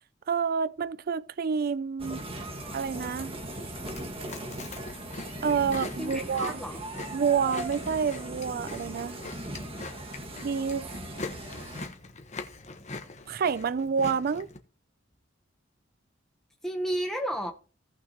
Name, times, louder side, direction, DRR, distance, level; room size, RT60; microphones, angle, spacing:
voice 1, 0.3-2.3 2.7-3.4 5.4-6.6 7.1-9.2 10.4-10.9 13.3-14.5, right 6 dB, 50° right, 0.4 m, -28 dB
sound 1, 2.0-11.9, right 1 dB, 30° right, 1.5 m, -39 dB
Chewing mastication, 3.8-14.6, left 3 dB, 40° left, 1.2 m, -42 dB
voice 2, 6.0-6.8 16.6-17.5, right 1 dB, 5° left, 0.9 m, -32 dB
17.0 x 5.9 x 2.9 m
head